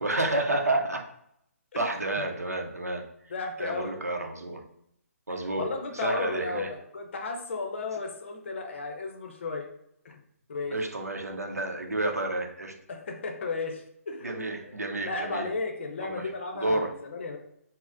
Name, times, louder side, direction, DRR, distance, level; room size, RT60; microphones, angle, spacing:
voice 1, 0.0-1.0 1.7-3.0 3.6-4.6 5.3-5.7 5.9-6.7 10.7-12.7 14.2-15.5 16.0-16.9, right 2 dB, 80° right, 3 dB, 0.6 m, -30 dB
voice 2, 3.3-3.9 5.6-9.7 10.0-10.2 10.5-10.8 12.9-14.3 14.6-14.7 15.0-17.4, left 3 dB, 50° left, 3 dB, 0.6 m, -34 dB
3.9 x 2.0 x 2.6 m, 0.74 s
figure-of-eight pair, 135°, 8 cm